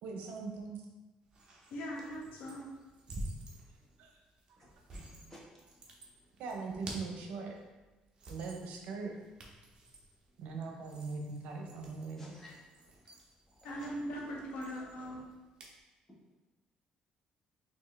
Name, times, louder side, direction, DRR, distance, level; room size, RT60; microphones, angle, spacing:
voice 1, 0.0-0.8 4.0-4.1 6.4-7.6 8.3-9.1 10.4-12.3, right 4 dB, 75° right, 2 dB, 0.7 m, -41 dB
sound 1, 1.2-15.8, right 1 dB, 35° right, 0.8 m, -51 dB
voice 2, 1.7-2.7 13.6-15.2, equal, 85° left, -2 dB, 1.0 m, -40 dB
voice 3, 4.9-5.4 12.2-12.6 13.8-13.9, left 1 dB, 10° left, -6 dB, 1.3 m, -54 dB
4.4 x 2.9 x 3.2 m, 1.2 s
cardioid pair, 130°, 2 cm